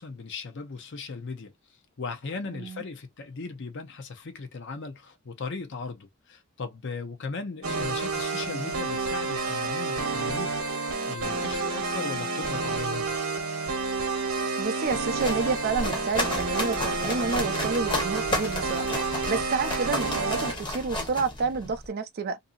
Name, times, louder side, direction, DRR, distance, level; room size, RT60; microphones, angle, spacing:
voice 1, 0.0-10.8 11.0-13.1, left 4 dB, 55° left, 0.7 m, -37 dB
voice 2, 2.5-2.8 14.6-18.9 19.3-22.4, right 4 dB, 45° right, 0.4 m, -29 dB
sound 1, 7.6-20.5, right 3 dB, 65° right, 0.8 m, -30 dB
sound 2, 14.9-21.8, left 1 dB, 20° left, 0.8 m, -33 dB
2.6 x 2.6 x 2.4 m
head